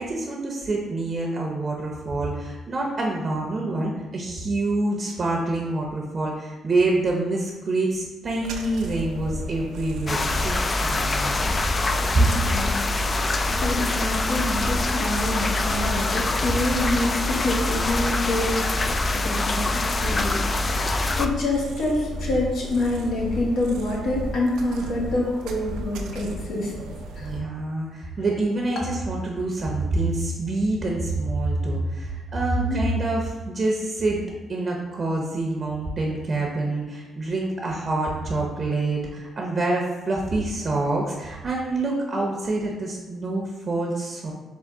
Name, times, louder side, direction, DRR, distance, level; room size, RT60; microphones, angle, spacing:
voice 1, 0.0-11.6 12.1-12.2 27.2-34.2 34.5-44.3, right 2 dB, 35° right, -1 dB, 0.6 m, -26 dB
sound 1, 8.4-27.4, equal, 90° right, 0.5 m, -33 dB
sound 2, 10.1-21.3, left 2 dB, 30° left, 0.3 m, -25 dB
voice 2, 12.0-12.9 13.2-26.7 27.2-27.3 32.5-32.8, left 2 dB, 75° left, -3 dB, 1.2 m, -27 dB
3.7 x 3.6 x 3.5 m, 1.2 s
cardioid pair, 90°, 0 cm